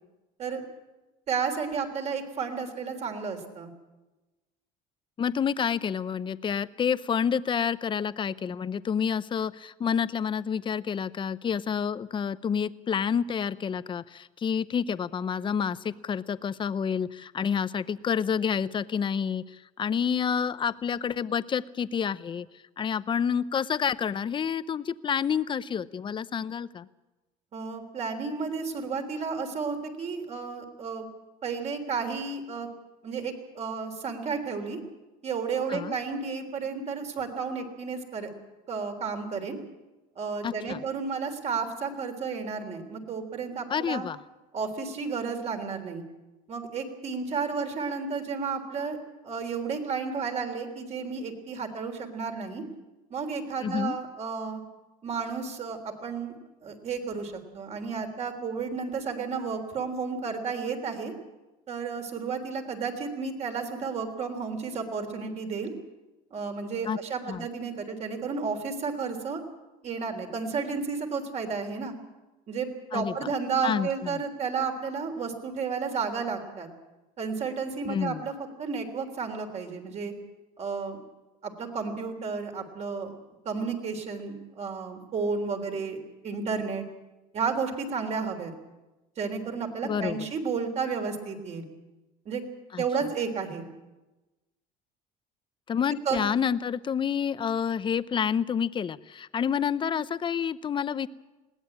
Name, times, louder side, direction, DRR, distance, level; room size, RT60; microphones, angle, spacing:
voice 1, 1.3-3.7 27.5-31.1 31.4-32.7 33.0-34.8 35.2-38.3 38.7-39.6 40.2-44.1 44.5-46.0 46.5-49.0 49.2-52.6 53.1-54.6 55.0-56.3 56.6-61.1 61.7-65.7 66.3-69.4 69.8-71.9 72.5-76.7 77.2-78.3 78.6-80.1 80.6-81.0 81.4-83.1 83.5-86.0 86.2-86.8 87.3-88.5 89.2-91.6 92.3-92.4 92.8-93.7 96.1-96.3, right 5 dB, 40° right, 5 dB, 3.6 m, -32 dB
voice 2, 5.2-22.5 22.8-26.9 35.7-36.0 40.4-40.8 43.7-44.2 53.6-54.0 66.9-67.0 67.3-67.5 72.9-73.1 73.6-74.2 77.9-78.3 89.8-90.3 92.7-92.8 95.7-101.1, left 7 dB, 30° left, 15 dB, 0.7 m, -29 dB
21.0 x 17.5 x 8.7 m, 1.1 s
cardioid pair, 120°, 17 cm